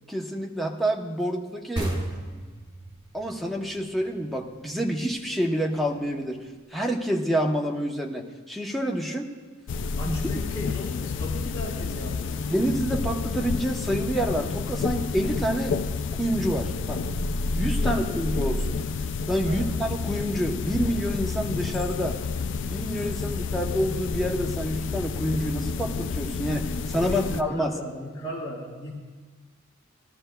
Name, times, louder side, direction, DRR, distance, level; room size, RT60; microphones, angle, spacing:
voice 1, 0.1-1.9 3.1-6.4 6.7-9.3 10.1-10.4 12.5-15.8 16.2-17.0 17.6-18.8 19.3-22.2 22.7-27.7, equal, ahead, -1 dB, 0.9 m, -28 dB
sound 1, 1.8-5.2, right 1 dB, 20° right, 2.0 m, -34 dB
sound 2, 9.7-27.4, left 4 dB, 60° left, 0.4 m, -30 dB
voice 2, 10.0-12.5 17.7-18.4 19.4-19.8 23.2-23.4 26.9-28.9, left 1 dB, 25° left, -9 dB, 1.9 m, -37 dB
19.0 x 13.0 x 2.3 m, 1.4 s
head